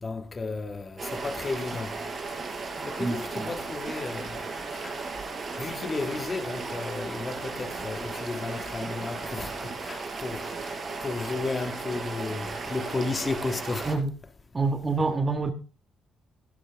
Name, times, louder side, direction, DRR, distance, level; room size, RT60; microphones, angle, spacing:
voice 1, 0.0-2.0 2.8-4.4 4.7-5.0 5.6-10.8 11.0-13.9, left 3 dB, 30° left, 1.7 m, -33 dB
sound 1, 1.0-13.9, right 4 dB, 40° right, 5.0 m, -35 dB
voice 2, 3.0-3.5 13.8-14.1 14.5-15.5, right 3 dB, 25° right, 1.5 m, -27 dB
16.5 x 11.5 x 3.5 m
cardioid pair, 90°, 0 cm